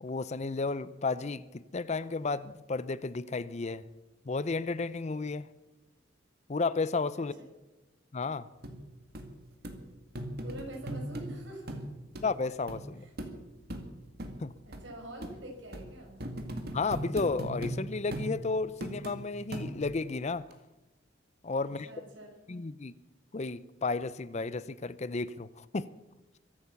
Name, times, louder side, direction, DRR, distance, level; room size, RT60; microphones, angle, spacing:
voice 1, 0.0-3.8 4.3-5.5 6.5-7.3 8.1-8.5 12.2-13.1 14.4-14.5 16.7-20.4 21.4-21.9 22.5-22.9 23.3-25.9, left 3 dB, 35° left, 0.6 m, -33 dB
sound 1, 8.6-8.7 9.1-9.3 9.6-9.8 10.1-11.3 11.7-11.9 12.1-12.3 12.7-12.8 13.2-13.3 13.7-13.9 14.2-14.3 14.7-14.8 15.2-15.3 15.7-15.9 16.2-17.8 18.1-18.3 18.8-19.2 19.5-20.0 20.5-20.6, right 1 dB, 55° right, 2.2 m, -38 dB
voice 2, 10.4-11.9 13.0-13.1 14.6-16.2 21.6-22.3, right 1 dB, 75° right, 5.6 m, -45 dB
23.5 x 8.6 x 7.1 m
head